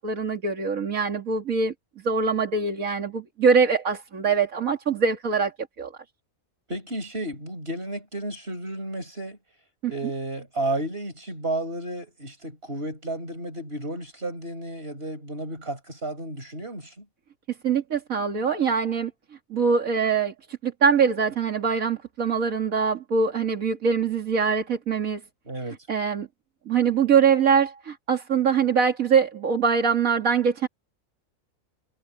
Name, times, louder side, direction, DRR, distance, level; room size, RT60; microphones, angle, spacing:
voice 1, 0.0-1.7 2.0-5.5 5.8-5.9 9.8-9.9 17.6-19.1 19.5-20.3 20.6-25.2 25.9-26.3 26.7-30.7, right 6 dB, 80° right, 2.4 m, -23 dB
voice 2, 6.7-9.4 9.9-17.0 25.5-25.8, right 1 dB, 45° right, 6.5 m, -32 dB
omnidirectional pair, 1.4 m